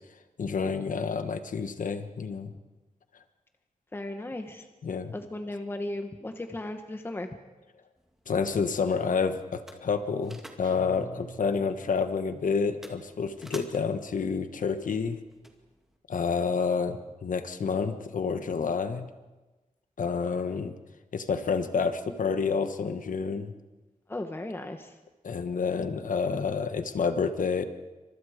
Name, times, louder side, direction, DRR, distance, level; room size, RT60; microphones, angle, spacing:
voice 1, 0.4-2.5 4.8-5.1 8.3-15.2 16.1-19.1 20.0-20.7 21.1-23.5 25.2-27.6, left 5 dB, 75° left, 9 dB, 1.5 m, -29 dB
voice 2, 3.9-4.7 5.1-7.3 24.1-25.0, left 1 dB, 15° left, 6 dB, 1.2 m, -36 dB
sound 1, 8.0-16.0, equal, 5° right, 2.3 m, -53 dB
sound 2, 10.6-12.3, right 6 dB, 85° right, 1.5 m, -47 dB
28.5 x 25.5 x 5.1 m, 1.2 s
wide cardioid pair, 180°, 14 cm